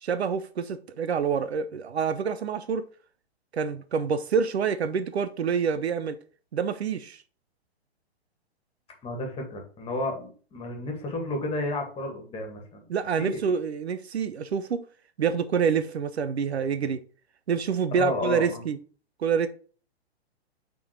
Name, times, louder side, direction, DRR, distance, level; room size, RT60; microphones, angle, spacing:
voice 1, 0.0-2.8 3.5-6.2 6.5-7.2 12.9-14.8 15.2-17.0 17.5-18.8 19.2-19.5, right 6 dB, 75° right, 0.7 m, -27 dB
voice 2, 9.0-13.4 17.9-18.6, left 2 dB, 15° left, 2.0 m, -32 dB
6.0 x 3.9 x 4.5 m
hypercardioid pair, 120°, 32 cm